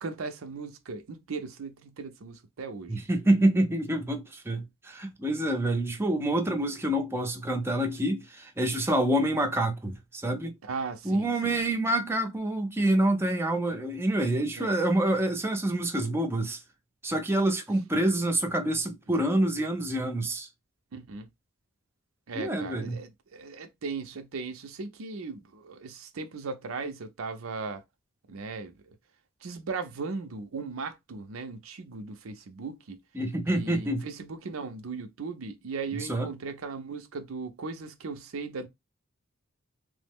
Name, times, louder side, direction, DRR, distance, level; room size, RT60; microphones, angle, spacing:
voice 1, 0.0-3.0 10.6-11.6 14.6-14.8 20.9-21.3 22.3-27.8 28.3-28.7 29.4-33.0 33.5-38.7, right 4 dB, 70° right, 0.5 m, -37 dB
voice 2, 2.9-10.5 11.0-16.6 17.0-20.5 22.4-23.0 33.1-34.1 35.9-36.3, right 1 dB, 10° right, 0.5 m, -27 dB
3.1 x 2.0 x 3.5 m
head